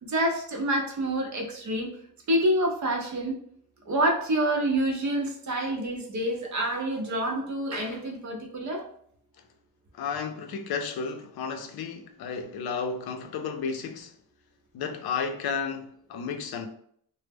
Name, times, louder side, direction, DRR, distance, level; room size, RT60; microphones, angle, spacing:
voice 1, 0.0-1.9 2.3-3.4 3.9-8.9, right 1 dB, 50° right, 0.6 m, -27 dB
voice 2, 9.9-14.1 14.7-16.7, left 5 dB, 80° left, 0.5 m, -32 dB
2.0 x 2.0 x 3.3 m
wide cardioid pair, 115°, 37 cm